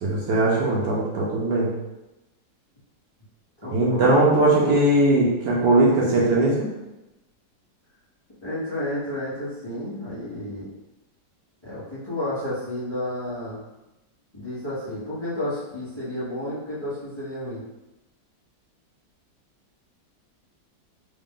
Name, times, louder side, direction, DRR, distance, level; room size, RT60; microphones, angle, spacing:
voice 1, 0.0-1.7 3.7-6.7, right 2 dB, 70° right, -5 dB, 1.4 m, -20 dB
voice 2, 3.6-5.0 8.4-10.7 11.6-13.6 14.3-17.6, left 1 dB, 15° left, -11 dB, 1.2 m, -31 dB
3.8 x 2.5 x 3.7 m, 0.98 s
omnidirectional pair, 2.0 m